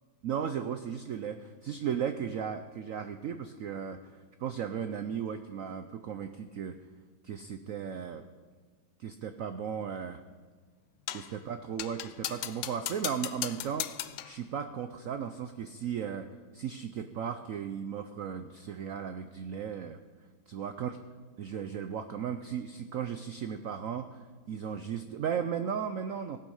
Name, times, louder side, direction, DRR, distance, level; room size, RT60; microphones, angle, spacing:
voice 1, 0.2-6.8 7.2-8.2 9.0-10.2 11.1-13.9 14.2-16.3 16.5-20.0 20.5-21.0 21.4-24.2 24.5-26.4, right 8 dB, 75° right, 9 dB, 0.7 m, -36 dB
sound 1, 11.1-11.4 11.8-14.4, left 12 dB, 75° left, 1.3 m, -37 dB
16.5 x 9.1 x 5.5 m, 1.5 s
omnidirectional pair, 2.1 m